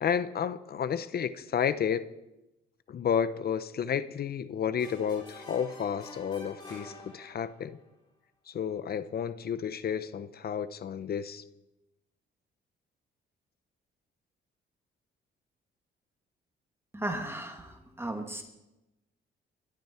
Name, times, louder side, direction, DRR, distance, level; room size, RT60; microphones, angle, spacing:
voice 1, 0.0-2.1 2.9-7.8 8.5-11.4, left 8 dB, 50° left, 14 dB, 0.8 m, -31 dB
sound 1, 4.8-7.7, left 2 dB, 25° left, 5.5 m, -48 dB
voice 2, 16.9-18.4, right 1 dB, 10° right, 4 dB, 2.0 m, -35 dB
23.5 x 13.0 x 4.4 m, 0.96 s
cardioid pair, 90°, 20 cm